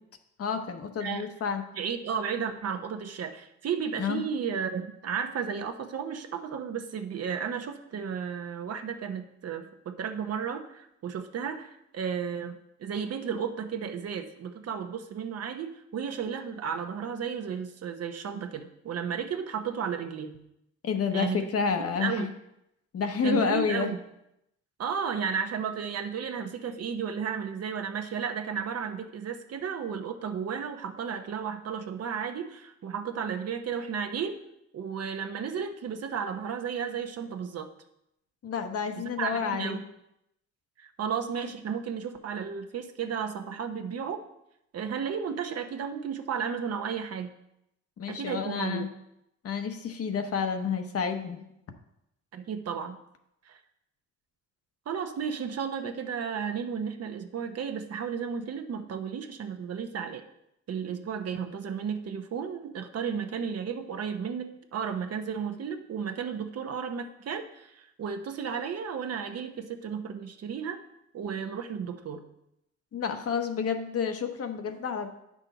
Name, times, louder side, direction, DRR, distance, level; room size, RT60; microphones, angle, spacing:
voice 1, 0.4-1.6 4.0-4.2 20.8-22.3 22.9-23.9 38.4-39.8 48.0-48.9 49.4-51.4 72.9-75.1, left 6 dB, 50° left, 6 dB, 1.0 m, -29 dB
voice 2, 1.7-20.4 21.1-21.5 21.8-22.3 23.2-24.0 24.8-34.4 34.7-37.7 39.0-39.8 40.8-44.2 44.7-47.4 48.1-48.9 52.3-53.0 53.4-53.6 54.9-60.2 60.7-70.8 71.1-72.2, right 7 dB, 55° right, 7 dB, 0.9 m, -33 dB
9.1 x 6.2 x 4.0 m, 0.81 s
cardioid pair, 90°, 30 cm